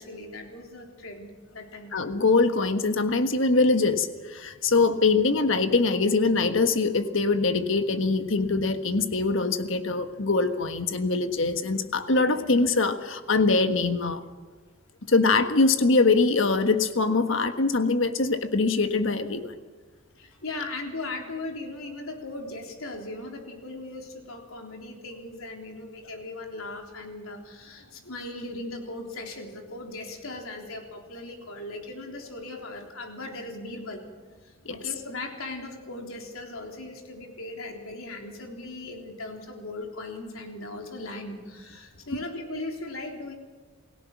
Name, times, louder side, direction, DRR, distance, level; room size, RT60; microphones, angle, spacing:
voice 1, 0.0-1.9 20.2-34.0 34.4-43.4, left 2 dB, 80° left, 2 dB, 3.6 m, -38 dB
voice 2, 1.9-14.2 15.1-19.5 34.6-34.8, left 3 dB, 60° left, 8 dB, 1.4 m, -23 dB
28.5 x 17.0 x 6.1 m, 1.4 s
head